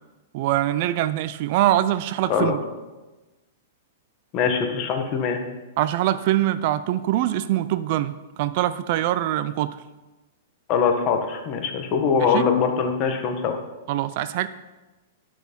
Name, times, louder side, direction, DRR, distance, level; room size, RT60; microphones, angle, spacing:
voice 1, 0.3-2.6 5.8-9.8 12.3-12.5 13.9-14.5, right 13 dB, 45° right, 14 dB, 0.4 m, -23 dB
voice 2, 4.3-5.4 10.7-13.6, left 6 dB, 35° left, 5 dB, 1.3 m, -22 dB
11.0 x 6.2 x 5.3 m, 1.1 s
hypercardioid pair, 150°, 0 cm